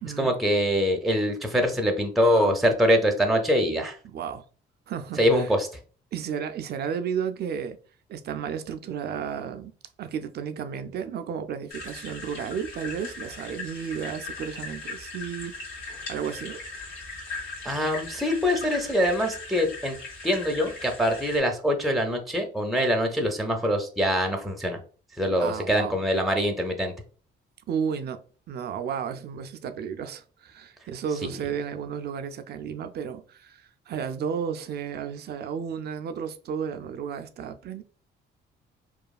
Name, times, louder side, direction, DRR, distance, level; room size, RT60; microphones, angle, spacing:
voice 1, 0.2-4.0 5.2-5.7 17.6-20.0 20.2-24.8 25.2-26.9, equal, ahead, 0.5 m, -24 dB
voice 2, 4.0-4.4 4.9-5.5 6.1-7.8 8.1-9.7 10.0-15.5 16.1-16.6 25.4-26.0 27.7-28.2 28.5-37.8, right 7 dB, 55° right, 0.4 m, -33 dB
sound 1, 11.7-21.4, left 3 dB, 80° left, 1.4 m, -39 dB
3.0 x 2.3 x 2.3 m
cardioid pair, 90°, 20 cm